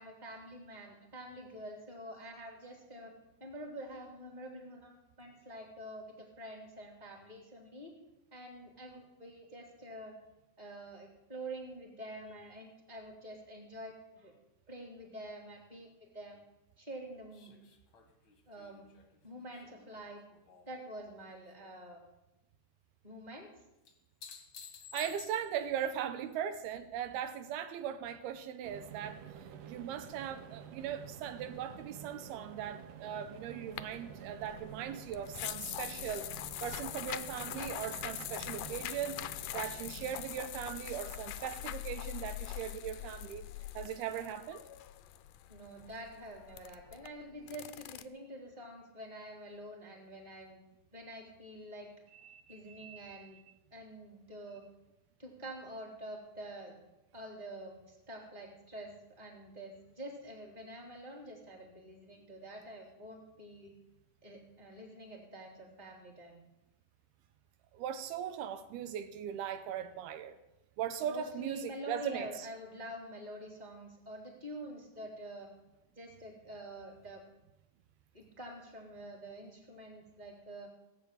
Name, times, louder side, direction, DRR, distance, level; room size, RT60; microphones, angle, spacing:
voice 1, 0.0-3.1 3.4-7.9 8.3-10.2 10.6-14.3 14.7-16.4 16.8-17.5 18.5-18.8 19.2-20.2 20.6-22.0 23.0-23.5 43.0-43.1 45.5-50.6 50.9-51.9 52.5-53.4 53.7-54.6 55.2-56.7 57.1-63.7 64.2-66.4 71.0-75.5 75.9-77.2 78.1-80.7, right 1 dB, 10° right, -1 dB, 3.1 m, -47 dB
sound 1, 17.3-20.8 21.2-21.8 23.9-25.7 28.3-28.4, left 7 dB, 50° left, 1.7 m, -53 dB
voice 2, 24.9-29.2 29.6-36.3 36.6-39.2 39.5-43.5 43.7-44.6 52.1-53.4 67.7-70.4 70.8-72.5, right 9 dB, 85° right, 10 dB, 2.8 m, -39 dB
sound 2, 28.6-41.0, right 7 dB, 65° right, 2.4 m, -50 dB
sound 3, 33.8-48.0, left 14 dB, 80° left, 2.0 m, -43 dB
17.5 x 8.1 x 8.7 m, 0.94 s
omnidirectional pair, 4.5 m